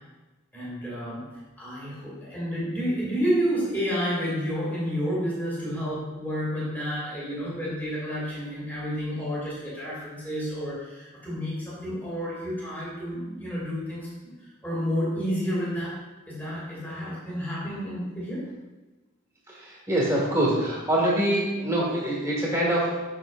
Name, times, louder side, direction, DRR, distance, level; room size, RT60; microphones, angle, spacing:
voice 1, 0.5-1.3 1.6-16.0 16.3-18.5, equal, 10° left, -8 dB, 2.3 m, -30 dB
voice 2, 19.5-23.0, right 1 dB, 15° right, -5 dB, 1.8 m, -25 dB
8.0 x 6.1 x 2.5 m, 1.2 s
head